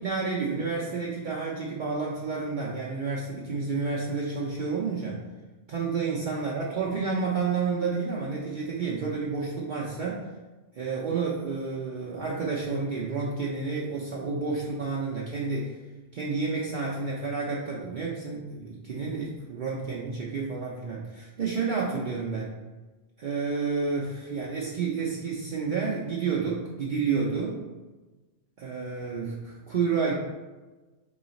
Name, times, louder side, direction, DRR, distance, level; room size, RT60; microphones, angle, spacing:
voice 1, 0.0-5.2 5.7-10.3 10.7-15.8 16.1-22.5 23.2-27.6 28.6-30.1, right 4 dB, 55° right, -4 dB, 0.6 m, -30 dB
3.9 x 3.1 x 4.0 m, 1.2 s
omnidirectional pair, 1.1 m